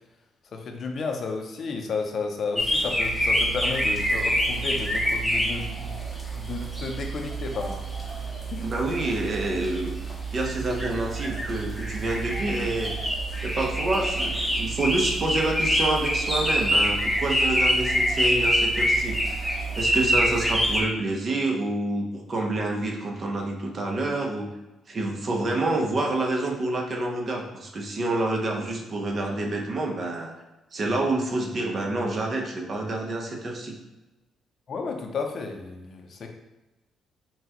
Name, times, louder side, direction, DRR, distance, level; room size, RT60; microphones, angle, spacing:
voice 1, 0.5-6.0 6.3-7.8 8.5-8.7 34.7-36.3, left 4 dB, 55° left, 3 dB, 0.6 m, -32 dB
sound 1, 2.6-20.8, equal, 5° left, 0.8 m, -26 dB
voice 2, 8.6-9.9 10.3-12.9 13.4-24.5 24.9-30.3 30.7-33.8, right 2 dB, 45° right, 1 dB, 0.8 m, -28 dB
5.7 x 2.3 x 2.9 m, 1.0 s
cardioid pair, 90°, 0 cm